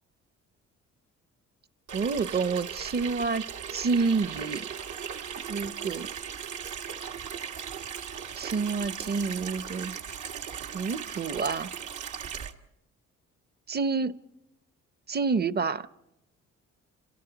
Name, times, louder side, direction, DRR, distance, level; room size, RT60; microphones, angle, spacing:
voice 1, 1.9-4.6 5.5-6.1 8.3-10.0 10.7-11.7 13.7-14.2 15.1-15.9, right 4 dB, 35° right, 0.8 m, -28 dB
Water tap faucet / Sink (filling or washing), 1.9-12.5, right 7 dB, 75° right, 1.6 m, -38 dB
29.5 x 27.5 x 4.0 m
cardioid pair, 90°, 30 cm